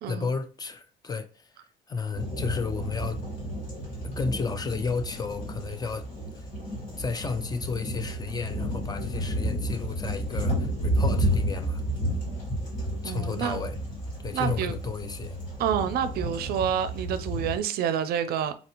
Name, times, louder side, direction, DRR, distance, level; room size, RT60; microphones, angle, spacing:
voice 1, 0.1-1.5 1.9-3.2 4.0-6.1 6.3-6.5 7.0-11.8 13.0-13.8 14.2-15.4, left 4 dB, 25° left, 0.4 m, -32 dB
sound 1, 2.1-17.6, equal, 50° left, 1.6 m, -31 dB
voice 2, 13.0-13.6 14.3-14.8 15.6-18.5, right 8 dB, 65° right, 0.4 m, -28 dB
4.1 x 2.5 x 2.8 m
cardioid pair, 110°, 17 cm